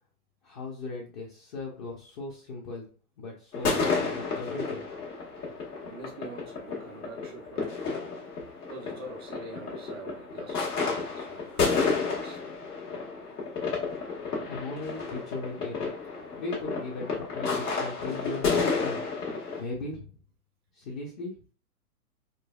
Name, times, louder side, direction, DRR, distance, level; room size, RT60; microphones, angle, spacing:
voice 1, 0.4-2.9 3.2-4.9 14.5-15.8 16.4-19.0 19.6-20.1 20.7-21.3, left 3 dB, 30° left, -3 dB, 0.6 m, -38 dB
sound 1, 3.5-19.6, left 4 dB, 75° left, 1.4 m, -31 dB
voice 2, 5.9-8.3 8.7-12.6 19.4-19.7, right 2 dB, 20° right, 0 dB, 0.3 m, -45 dB
3.8 x 2.2 x 2.2 m, 0.39 s
hypercardioid pair, 125°, 45 cm